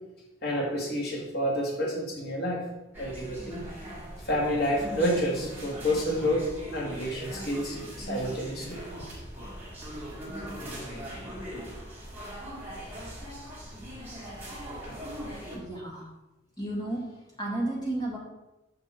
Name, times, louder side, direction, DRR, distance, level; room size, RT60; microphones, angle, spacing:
voice 1, 0.4-2.6 3.0-3.7 4.3-8.8, equal, 55° left, -3 dB, 2.0 m, -29 dB
sound 1, 2.9-15.6, equal, 10° right, 1.9 m, -40 dB
voice 2, 15.5-16.1 16.6-17.0 17.4-18.2, right 1 dB, 20° left, -4 dB, 2.0 m, -32 dB
6.9 x 5.3 x 4.4 m, 0.97 s
head